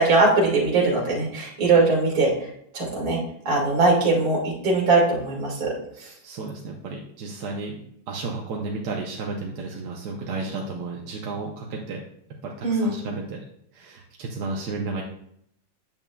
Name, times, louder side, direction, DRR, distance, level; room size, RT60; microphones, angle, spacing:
voice 1, 0.0-2.3 2.7-3.2 3.4-5.7 6.0-6.1 12.6-12.9, right 3 dB, 45° right, -3 dB, 2.4 m, -21 dB
voice 2, 6.0-12.0 12.4-13.4 13.7-15.0, right 3 dB, 65° right, -1 dB, 1.2 m, -33 dB
9.0 x 7.1 x 2.3 m, 0.70 s
omnidirectional pair, 2.2 m